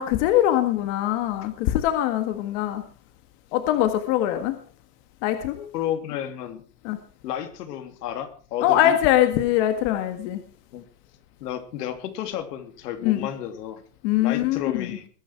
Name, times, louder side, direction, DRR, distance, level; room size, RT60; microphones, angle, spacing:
voice 1, 0.0-2.8 3.5-4.6 5.2-5.7 6.8-7.0 8.6-10.4 13.0-13.3 14.0-15.0, left 12 dB, 45° left, 8 dB, 1.8 m, -22 dB
voice 2, 5.7-6.6 7.2-8.9 10.7-10.9 11.4-13.8 14.2-15.1, left 10 dB, 80° left, 8 dB, 3.0 m, -32 dB
20.5 x 10.0 x 4.7 m, 0.40 s
supercardioid pair, 165°, 47 cm